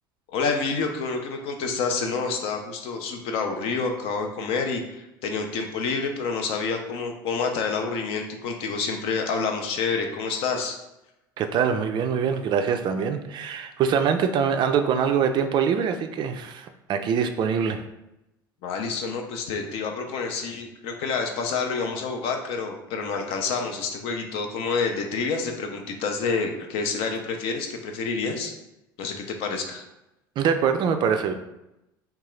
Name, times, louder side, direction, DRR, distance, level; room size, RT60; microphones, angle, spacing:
voice 1, 0.3-10.8 18.6-28.5 29.0-29.8, left 4 dB, 55° left, 4 dB, 0.5 m, -28 dB
voice 2, 11.4-17.8 30.4-31.3, right 7 dB, 40° right, 7 dB, 0.3 m, -24 dB
3.6 x 2.3 x 3.1 m, 0.91 s
figure-of-eight pair, 70°, 12 cm